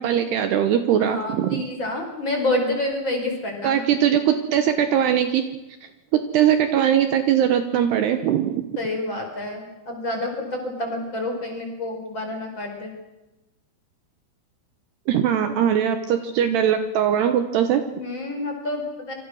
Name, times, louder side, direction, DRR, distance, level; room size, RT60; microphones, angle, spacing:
voice 1, 0.0-1.7 3.6-5.5 6.1-8.7 15.1-17.8, right 9 dB, 70° right, 8 dB, 2.9 m, -21 dB
voice 2, 1.0-3.8 8.8-12.9 17.9-19.1, left 2 dB, 25° left, 3 dB, 5.0 m, -28 dB
27.5 x 25.0 x 6.4 m, 1.0 s
omnidirectional pair, 5.5 m